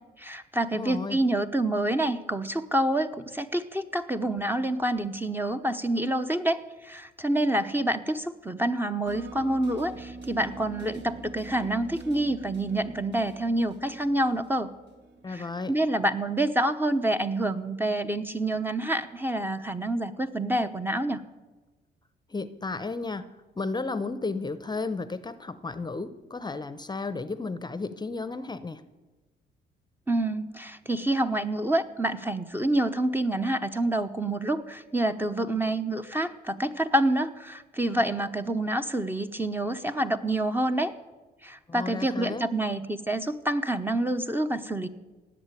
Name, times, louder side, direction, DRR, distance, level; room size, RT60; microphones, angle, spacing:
voice 1, 0.2-14.7 15.3-21.2 30.1-40.9 41.4-44.9, right 1 dB, 10° right, 8 dB, 0.9 m, -27 dB
voice 2, 0.7-1.2 15.2-15.7 22.3-23.3 23.6-28.8 41.7-42.5, left 3 dB, 20° left, 14 dB, 0.8 m, -33 dB
sound 1, 9.1-15.6, right 3 dB, 60° right, 2.7 m, -44 dB
18.0 x 7.5 x 9.8 m, 1.2 s
cardioid pair, 90°, 20 cm